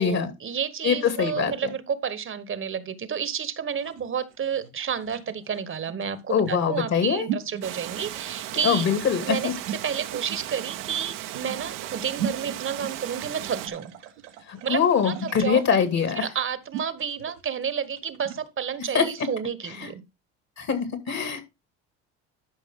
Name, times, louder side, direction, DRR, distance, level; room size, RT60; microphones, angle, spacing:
voice 1, 0.0-8.9 9.2-13.9 14.6-20.0, right 7 dB, 35° right, 1.3 m, -31 dB
voice 2, 0.8-1.5 6.3-7.3 8.6-9.5 14.5-16.3 18.9-19.0 19.8-19.9 20.6-21.5, left 7 dB, 50° left, 2.5 m, -23 dB
sound 1, 3.7-18.5, right 10 dB, 90° right, 1.7 m, -39 dB
Water, 7.6-13.7, right 13 dB, 70° right, 1.1 m, -36 dB
12.5 x 5.3 x 3.7 m
supercardioid pair, 80°, 34 cm